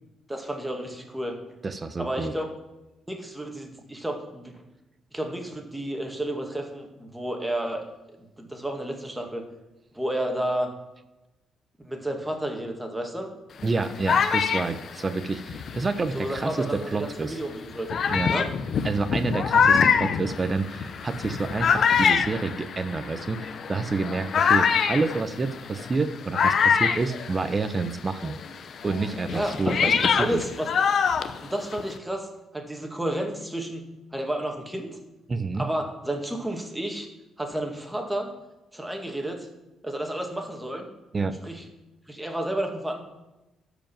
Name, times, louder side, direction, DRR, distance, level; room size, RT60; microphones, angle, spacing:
voice 1, 0.3-1.4 2.0-2.5 3.1-4.6 5.1-7.9 8.4-9.4 9.9-10.7 11.8-13.3 16.1-17.9 18.3-18.5 29.3-30.7 31.4-32.3 32.5-33.8 34.1-34.9 35.5-37.1 37.4-38.3 38.7-39.5 39.8-40.9 41.4-41.6 42.1-43.0, right 1 dB, 10° right, 3 dB, 2.1 m, -31 dB
voice 2, 1.6-2.3 13.6-17.4 18.1-18.3 18.8-28.4 28.8-30.4 35.3-35.7 41.1-41.4, right 3 dB, 30° right, 11 dB, 0.8 m, -28 dB
sound 1, 13.6-16.6 17.3-17.4 17.9-27.9 28.2-32.0, left 6 dB, 60° left, 0.7 m, -25 dB
12.5 x 5.1 x 7.4 m, 1.0 s
cardioid pair, 90°, 0 cm